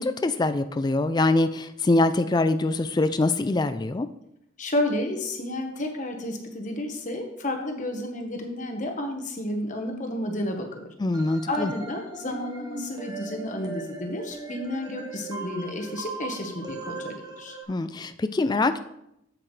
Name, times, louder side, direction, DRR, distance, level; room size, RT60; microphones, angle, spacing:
voice 1, 0.0-4.1 11.0-11.7 17.7-18.8, left 2 dB, 20° left, 10 dB, 0.3 m, -24 dB
voice 2, 4.6-10.9 11.5-17.6, left 1 dB, 40° left, 4 dB, 1.2 m, -31 dB
sound 1, 11.1-17.6, right 3 dB, 20° right, 1.1 m, -39 dB
8.6 x 7.8 x 3.3 m, 0.80 s
head